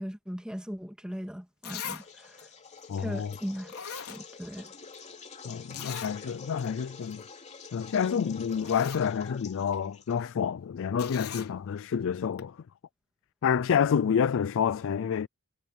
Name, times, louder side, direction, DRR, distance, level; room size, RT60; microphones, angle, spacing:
voice 1, 0.0-2.4 3.0-3.7 4.1-4.7, equal, 5° right, 1.9 m, -38 dB
Zipper (clothing), 1.1-1.2 1.6-2.1 2.4-2.5 3.3-3.4 3.7-4.7 4.9-5.0 5.7-6.2 6.6-6.7 7.0-7.2 8.1-8.2 8.5-9.1 11.0-11.5 12.4-12.5, left 8 dB, 80° left, 4.2 m, -40 dB
sound 1, 1.9-10.5, left 5 dB, 30° left, 2.9 m, -47 dB
voice 2, 2.9-3.4 5.4-7.2 7.7-12.6 13.4-15.3, left 7 dB, 60° left, 0.4 m, -28 dB
head